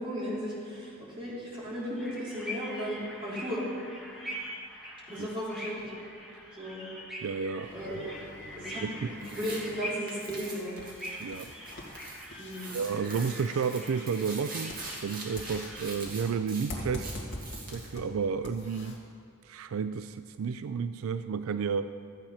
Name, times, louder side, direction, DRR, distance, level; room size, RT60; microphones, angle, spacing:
voice 1, 0.0-3.6 5.1-6.0 6.6-6.9 7.7-8.2 8.6-8.8 9.1-10.8 12.4-12.8, equal, 25° right, -8 dB, 3.8 m, -35 dB
sound 1, 2.0-15.8, equal, ahead, 1.7 m, -43 dB
voice 2, 7.2-8.2 8.8-9.1 11.2-11.5 12.3-12.4 12.7-14.8 15.0-17.2 17.7-19.0 19.4-21.9, right 6 dB, 85° right, 11 dB, 0.4 m, -32 dB
sound 2, 7.6-19.0, left 1 dB, 60° left, 1.9 m, -45 dB
sound 3, 9.2-9.6 10.1-12.3 12.5-17.9, right 3 dB, 45° right, 2.2 m, -43 dB
13.5 x 8.6 x 5.7 m, 2.2 s
head